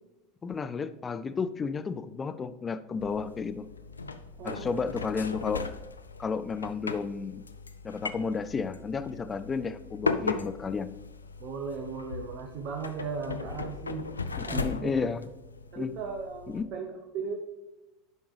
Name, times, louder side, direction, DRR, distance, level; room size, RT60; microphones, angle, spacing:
voice 1, 0.4-3.7 4.4-5.7 6.2-7.4 7.8-10.9 14.4-15.2 15.8-15.9 16.5-16.7, left 5 dB, 25° left, 12 dB, 0.5 m, -32 dB
sound 1, 3.0-16.6, left 4 dB, 85° left, 0.4 m, -38 dB
voice 2, 4.4-4.8 11.4-14.1 14.5-14.9 15.7-17.3, right 5 dB, 50° right, 2 dB, 0.9 m, -37 dB
10.5 x 5.3 x 3.3 m, 1.0 s
figure-of-eight pair, 75°, 0 cm